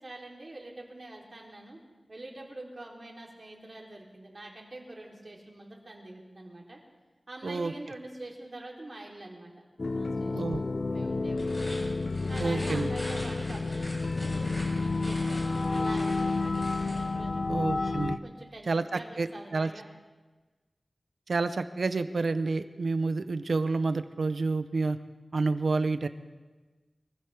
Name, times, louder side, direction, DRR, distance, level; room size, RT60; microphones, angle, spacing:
voice 1, 0.0-1.8 2.1-6.8 7.3-9.5 9.9-11.7 12.3-17.5 18.2-19.9, right 2 dB, 50° right, -1 dB, 3.1 m, -45 dB
sound 1, 9.8-18.2, left 3 dB, 60° left, 0.5 m, -30 dB
sound 2, 11.3-17.1, equal, 30° left, 6.9 m, -44 dB
voice 2, 12.4-12.9 17.5-18.2 18.7-19.7 21.3-25.0 25.3-26.1, right 3 dB, 90° right, 11 dB, 0.6 m, -29 dB
23.5 x 15.0 x 3.4 m, 1.3 s
wide cardioid pair, 70°, 0 cm